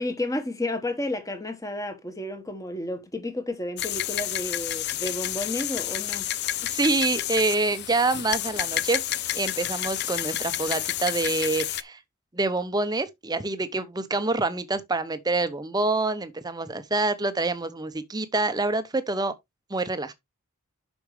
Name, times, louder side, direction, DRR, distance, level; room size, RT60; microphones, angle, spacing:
voice 1, 0.0-6.3, left 1 dB, 15° left, 1.3 m, -31 dB
sound 1, 3.8-11.8, left 13 dB, 50° left, 0.5 m, -30 dB
voice 2, 6.7-9.0 9.3-12.0 12.3-19.3 19.7-20.1, right 3 dB, 20° right, 0.7 m, -26 dB
8.4 x 6.2 x 3.2 m
head